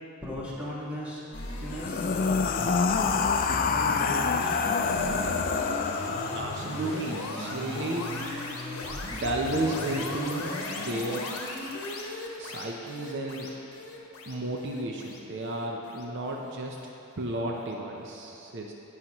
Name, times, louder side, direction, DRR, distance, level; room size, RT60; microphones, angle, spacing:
voice 1, 0.2-1.2 1.6-2.1 2.9-5.1 6.0-6.1, equal, 5° right, -7 dB, 1.6 m, -38 dB
sound 1, 1.3-16.5, left 2 dB, 80° left, 1.1 m, -37 dB
sound 2, 1.7-6.9, left 5 dB, 40° left, 0.4 m, -27 dB
voice 2, 6.3-8.6 9.1-10.5 10.8-11.3 12.4-13.5 14.2-16.8 17.2-18.7, right 1 dB, 55° right, 0 dB, 0.6 m, -33 dB
17.0 x 5.8 x 3.0 m, 3.0 s
head